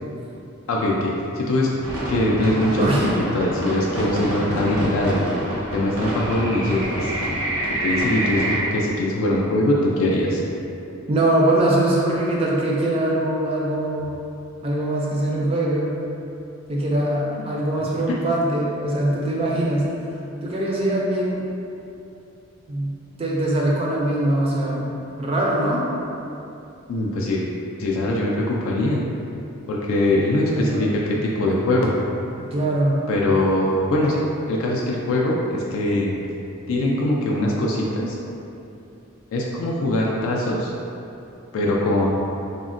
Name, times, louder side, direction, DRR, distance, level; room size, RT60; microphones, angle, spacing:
voice 1, 0.7-1.7 2.1-2.9 3.3-5.2 5.7-7.1 7.8-10.4 18.1-18.2 26.9-27.4 27.8-29.0 29.7-31.9 33.1-36.1 36.7-38.2 39.3-40.7 41.5-42.1, left 1 dB, 70° left, -3 dB, 0.3 m, -22 dB
sound 1, 1.8-8.6, right 1 dB, 75° right, 0.6 m, -27 dB
voice 2, 11.1-14.1 14.6-15.9 16.7-20.1 20.4-21.4 22.7-22.9 23.2-24.9 25.2-25.9 30.5-30.8 32.4-33.0, right 1 dB, 25° right, -4 dB, 0.3 m, -22 dB
3.5 x 2.0 x 2.4 m, 2.7 s
head